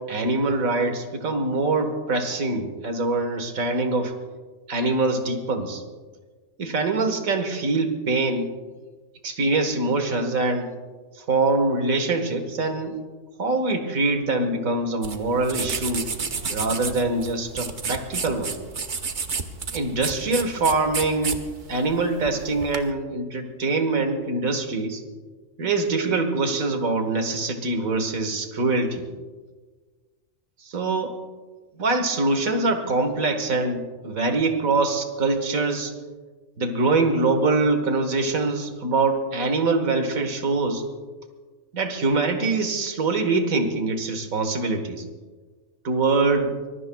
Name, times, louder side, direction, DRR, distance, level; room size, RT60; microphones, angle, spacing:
voice 1, 0.0-4.1 4.7-5.8 6.6-8.5 9.2-10.7 11.3-13.0 13.4-16.1 16.5-18.5 19.7-21.4 21.7-25.0 25.6-29.1 30.6-31.1 31.8-35.9 36.6-40.8 41.7-45.0 45.8-46.6, right 3 dB, 80° right, 6 dB, 1.9 m, -24 dB
sound 1, 15.0-22.9, right 5 dB, 40° right, 1.0 m, -31 dB
24.5 x 21.0 x 2.3 m, 1.4 s
omnidirectional pair, 1.4 m